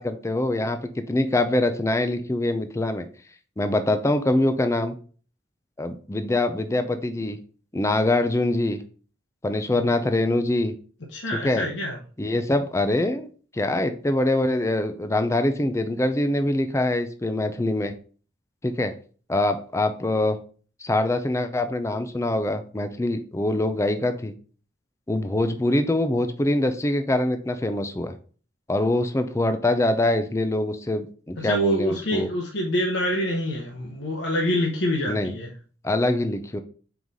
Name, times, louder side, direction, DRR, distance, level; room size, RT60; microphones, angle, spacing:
voice 1, 0.0-3.1 3.6-5.0 5.8-7.4 7.7-8.8 9.4-10.7 11.4-11.7 12.2-17.9 18.6-18.9 19.3-20.4 20.8-24.3 25.1-28.1 28.7-32.3 35.1-35.3 35.8-36.6, left 1 dB, 15° left, 9 dB, 0.4 m, -24 dB
voice 2, 11.1-12.0 31.4-35.5, equal, 75° left, -1 dB, 1.1 m, -26 dB
4.7 x 3.9 x 5.3 m, 0.41 s
head